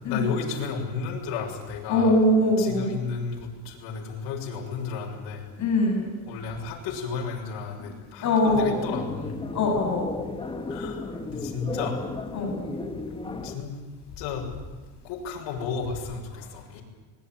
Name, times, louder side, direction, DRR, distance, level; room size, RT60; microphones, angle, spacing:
voice 1, 0.0-2.2 2.6-5.5 6.3-9.4 10.7-12.0 13.3-13.7 14.2-14.5 15.0-16.8, left 5 dB, 70° left, -2 dB, 6.8 m, -33 dB
voice 2, 1.9-2.9 5.6-6.1 7.8-7.9 8.2-8.7 9.5-10.0 12.3-12.5, left 1 dB, 40° left, 1 dB, 7.9 m, -22 dB
sound 1, 8.4-13.6, left 3 dB, 10° left, 1.7 m, -34 dB
25.5 x 21.0 x 9.2 m, 1.2 s
cardioid pair, 160°, 44 cm